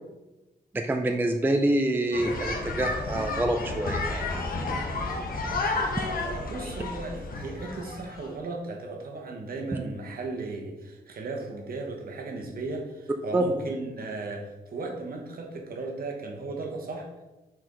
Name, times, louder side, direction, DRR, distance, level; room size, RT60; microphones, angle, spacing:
voice 1, 0.7-4.4 13.3-13.5, right 1 dB, 10° right, 5 dB, 0.4 m, -26 dB
sound 1, 2.1-8.3, left 3 dB, 55° left, 1.1 m, -31 dB
voice 2, 6.2-17.1, right 3 dB, 60° right, 1 dB, 1.2 m, -36 dB
5.9 x 4.5 x 3.8 m, 1.1 s
wide cardioid pair, 125°, 18 cm